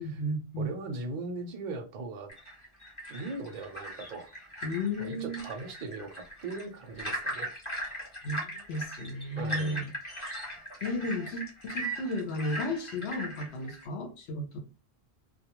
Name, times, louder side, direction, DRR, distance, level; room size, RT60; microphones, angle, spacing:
voice 1, 0.0-0.7 4.6-5.4 8.2-9.9 10.8-14.6, left 1 dB, 80° left, 0.9 m, -34 dB
voice 2, 0.6-2.3 3.1-4.3 5.0-7.5 9.3-9.8, right 3 dB, 55° right, 0.6 m, -39 dB
sound 1, 2.3-13.8, right 1 dB, 30° left, 0.8 m, -39 dB
2.2 x 2.2 x 2.9 m
omnidirectional pair, 1.1 m